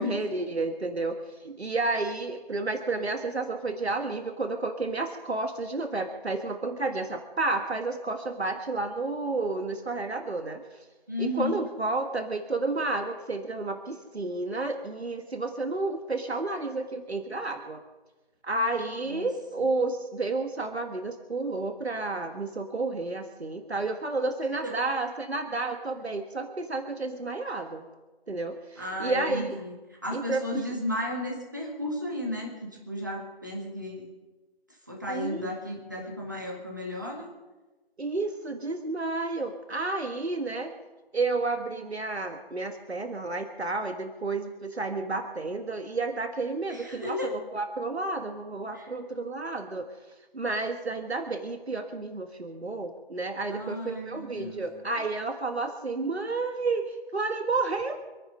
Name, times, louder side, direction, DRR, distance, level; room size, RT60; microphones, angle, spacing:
voice 1, 0.0-10.6 11.2-17.8 18.4-27.8 28.3-29.6 30.1-30.6 35.1-35.5 36.0-36.1 38.0-40.7 41.1-49.9 50.3-57.9, right 3 dB, 90° right, 6 dB, 1.7 m, -31 dB
voice 2, 11.1-11.6 19.0-19.3 19.6-19.7 24.6-24.8 28.8-29.7 30.0-34.1 34.9-37.3 46.7-47.4 48.7-48.9 53.5-54.6, left 1 dB, 20° right, -1 dB, 1.8 m, -34 dB
26.0 x 10.0 x 5.4 m, 1.2 s
figure-of-eight pair, 180°, 31 cm